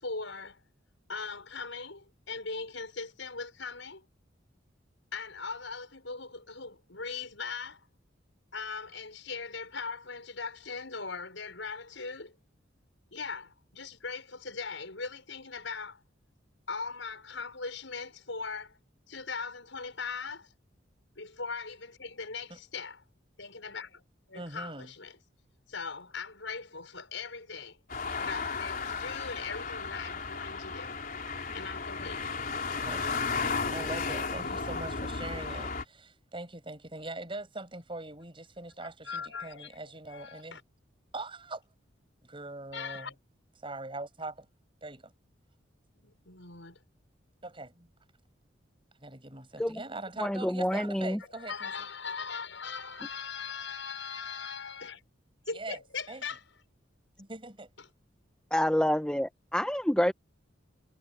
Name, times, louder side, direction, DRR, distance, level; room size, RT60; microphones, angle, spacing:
voice 1, 0.0-0.6 1.1-4.0 5.1-7.8 8.5-12.3 13.1-16.0 16.7-18.8 19.1-20.5 21.2-23.0 23.4-24.0 24.3-25.2 25.7-27.8 28.2-31.0 31.5-32.3 38.8-40.6 42.7-43.1 46.0-46.8 51.2-55.0 55.5-56.4, left 5 dB, 80° left, 5.9 m, -40 dB
voice 2, 24.3-24.9 32.9-33.1 33.7-40.6 41.1-41.6 42.2-43.1 43.6-44.5 44.8-45.1 47.4-47.9 49.0-51.7 55.5-55.8 56.1-56.2 57.2-57.7, right 2 dB, 25° right, 7.7 m, -42 dB
sound 1, 27.9-35.8, left 4 dB, 45° left, 4.2 m, -34 dB
voice 3, 50.2-51.2 58.5-60.1, equal, 5° left, 1.0 m, -27 dB
head